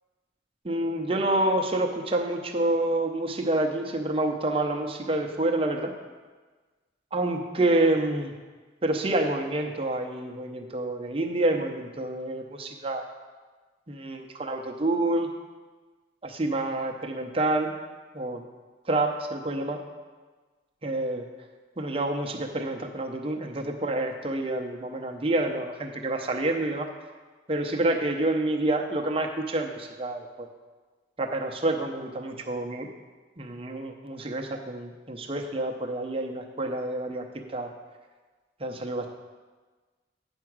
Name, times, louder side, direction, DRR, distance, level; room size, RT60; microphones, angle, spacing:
voice 1, 0.6-5.9 7.1-8.3 8.8-13.0 13.9-15.3 16.2-17.7 18.1-18.4 18.9-19.8 20.8-21.2 21.8-26.9 27.5-30.5 31.2-32.9 33.4-37.7 38.6-39.1, right 2 dB, 30° right, 2 dB, 0.7 m, -28 dB
8.9 x 4.8 x 6.1 m, 1.4 s
head